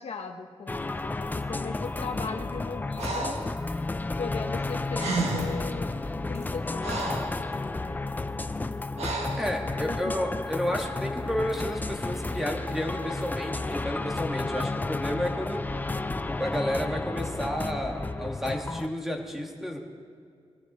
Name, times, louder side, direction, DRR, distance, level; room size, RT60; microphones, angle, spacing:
voice 1, 0.0-3.4 4.2-8.5 9.9-10.1, left 5 dB, 70° left, 5 dB, 1.2 m, -39 dB
sound 1, 0.7-18.9, left 2 dB, 15° left, 0.5 m, -32 dB
Breathing, 3.0-3.5 4.7-4.8 5.0-5.7 6.3-7.4 9.0-9.5, right 3 dB, 80° right, 1.9 m, -31 dB
voice 2, 9.3-15.6 16.3-19.8, equal, 5° right, 1 dB, 2.0 m, -31 dB
21.5 x 15.0 x 4.4 m, 2.2 s
wide cardioid pair, 120°, 11 cm